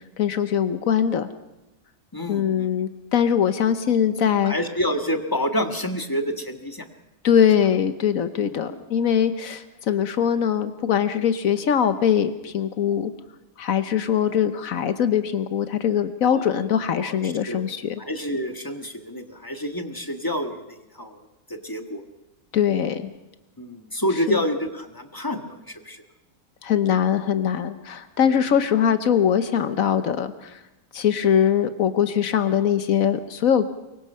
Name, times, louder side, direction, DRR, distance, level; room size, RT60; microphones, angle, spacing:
voice 1, 0.2-1.3 2.3-4.5 7.2-13.1 13.6-18.0 22.5-23.1 24.3-24.4 26.6-30.6 30.9-33.7, left 8 dB, 80° left, 10 dB, 1.4 m, -22 dB
voice 2, 2.1-2.7 4.4-6.9 8.4-8.8 16.3-16.6 17.0-17.6 18.0-21.2 21.5-22.0 23.6-26.0 28.2-28.3, equal, 15° left, 6 dB, 1.6 m, -28 dB
24.0 x 23.0 x 5.6 m, 0.95 s
omnidirectional pair, 1.4 m